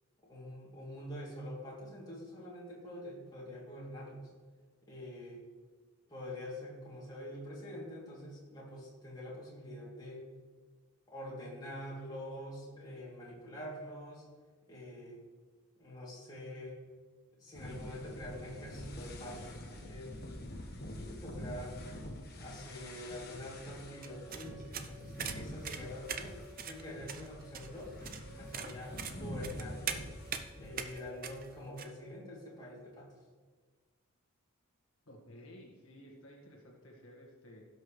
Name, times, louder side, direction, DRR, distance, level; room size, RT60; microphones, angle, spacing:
voice 1, 0.3-4.3 4.9-5.4 6.1-10.3 11.1-14.2 14.7-15.2 15.8-16.8 17.4-20.2 20.9-21.8 22.4-26.4 26.7-27.9 28.4-30.1 30.5-33.2, left 1 dB, 20° left, -6 dB, 2.8 m, -45 dB
sound 1, 17.5-30.9, left 1 dB, 45° left, 1.4 m, -46 dB
sound 2, 23.8-32.8, equal, 10° right, 1.5 m, -58 dB
sound 3, 24.0-31.9, right 7 dB, 40° right, 0.6 m, -42 dB
voice 2, 35.1-37.6, equal, 60° left, -2 dB, 1.7 m, -54 dB
16.5 x 6.3 x 3.2 m, 1.5 s
head